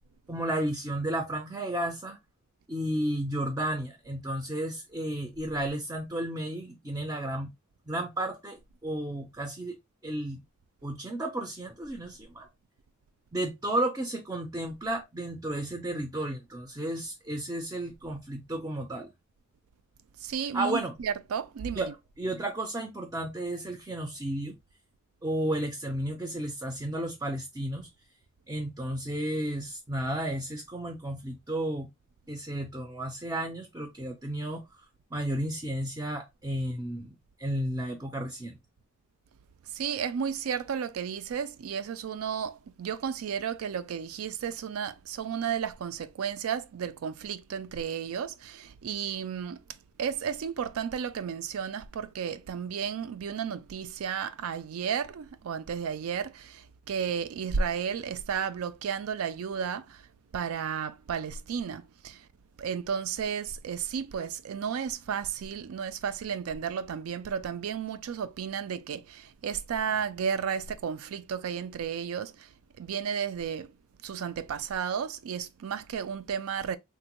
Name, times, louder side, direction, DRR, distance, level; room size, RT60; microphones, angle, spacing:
voice 1, 0.3-2.2 2.7-7.5 7.9-9.8 10.0-10.4 10.8-12.5 13.3-19.1 20.5-20.9 21.7-24.5 25.2-27.9 28.5-31.9 32.3-34.8 35.1-38.6, right 1 dB, 15° right, 0.4 m, -33 dB
voice 2, 20.2-21.9 39.7-49.6 50.0-60.0 60.3-62.3 62.6-72.5 72.8-73.7 74.0-76.8, right 7 dB, 80° right, 0.4 m, -33 dB
3.5 x 2.1 x 2.9 m
head